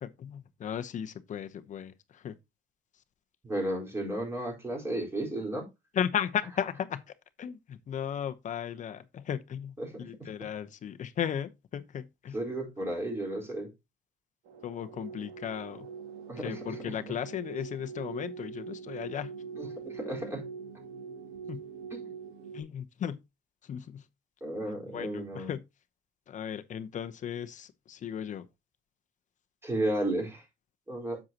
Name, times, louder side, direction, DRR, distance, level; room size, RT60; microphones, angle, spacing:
voice 1, 0.0-2.4 5.9-7.0 7.4-9.7 10.0-12.4 14.6-15.9 16.4-19.3 21.5-21.6 22.5-23.2 23.6-24.0 24.9-25.6 26.3-28.5, left 9 dB, 45° left, 0.9 m, -35 dB
voice 2, 3.4-5.6 9.8-10.3 12.3-13.7 16.3-17.1 19.5-20.4 21.9-22.1 24.4-25.5 29.6-30.5 30.9-31.2, right 1 dB, 15° right, 4.2 m, -34 dB
sound 1, 14.4-22.6, right 6 dB, 80° right, 2.4 m, -43 dB
7.8 x 7.4 x 2.9 m
cardioid pair, 110°, 17 cm